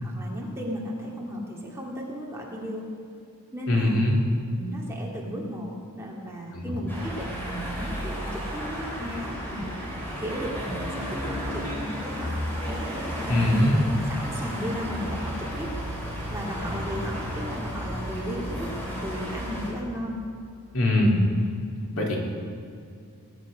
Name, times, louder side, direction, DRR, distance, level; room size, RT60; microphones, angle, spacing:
voice 1, 0.0-2.8 3.5-4.0 4.5-15.7 16.3-20.2, equal, 10° right, -3 dB, 2.2 m, -35 dB
voice 2, 3.7-4.2 6.5-6.8 13.3-13.8 20.7-21.2 21.9-22.2, left 1 dB, 65° left, -2 dB, 2.8 m, -22 dB
sound 1, 6.9-19.7, equal, 10° left, 4.0 m, -33 dB
20.5 x 10.5 x 5.1 m, 2.4 s
head